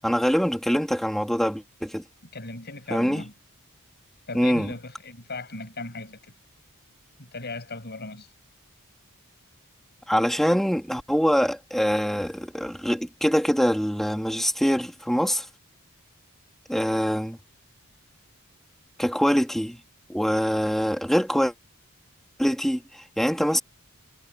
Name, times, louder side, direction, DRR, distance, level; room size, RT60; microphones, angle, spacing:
voice 1, 0.0-2.0 2.9-3.2 4.3-4.7 10.1-15.4 16.7-17.4 19.0-19.8 20.1-21.5 22.4-23.6, equal, ahead, 2.9 m, -24 dB
voice 2, 2.3-3.3 4.3-6.3 7.2-8.3, left 3 dB, 50° left, 7.4 m, -37 dB
head